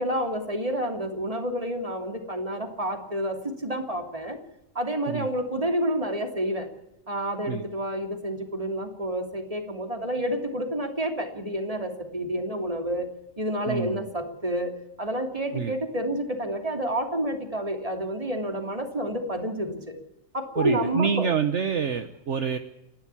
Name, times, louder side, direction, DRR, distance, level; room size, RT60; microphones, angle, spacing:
voice 1, 0.0-4.4 4.7-6.7 7.1-13.1 13.4-20.0 20.3-21.3, right 1 dB, 25° right, 5 dB, 3.1 m, -29 dB
voice 2, 13.7-14.1 15.5-15.7 20.6-22.6, right 6 dB, 60° right, 9 dB, 1.3 m, -27 dB
29.5 x 12.0 x 8.5 m, 0.90 s
omnidirectional pair, 1.4 m